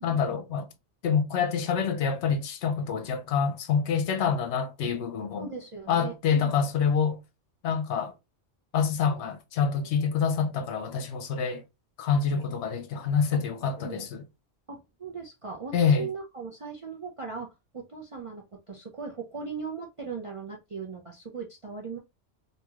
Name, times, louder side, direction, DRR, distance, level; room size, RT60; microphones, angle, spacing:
voice 1, 0.0-0.7 1.0-5.5 5.9-7.2 7.6-8.1 8.7-11.6 12.0-14.2 15.7-16.1, left 6 dB, 70° left, 0.9 m, -26 dB
voice 2, 5.4-6.5 12.1-12.4 13.8-14.1 14.7-22.0, right 5 dB, 45° right, 0.4 m, -39 dB
3.0 x 2.7 x 2.3 m
omnidirectional pair, 1.3 m